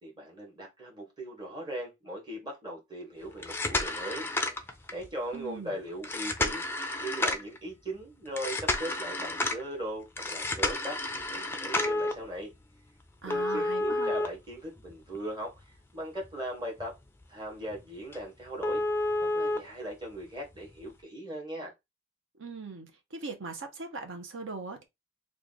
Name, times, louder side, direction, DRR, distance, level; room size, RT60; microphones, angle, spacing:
voice 1, 0.0-4.6 4.9-6.6 7.0-11.0 11.3-12.5 13.2-15.6 15.9-16.9 17.3-18.8 19.2-21.7, right 1 dB, 20° right, 1.5 m, -39 dB
sound 1, 3.3-5.1 6.0-7.6 8.4-9.6 10.2-12.1 13.3-15.2 15.6-15.7 16.2-16.3 16.8-16.9 17.2-17.3 17.7-17.8 18.1-18.2 18.6-19.6 20.7-20.8, left 2 dB, 10° left, 0.4 m, -30 dB
voice 2, 5.3-5.8 13.2-14.1 22.3-24.8, right 4 dB, 60° right, 0.9 m, -40 dB
3.2 x 2.5 x 3.8 m
head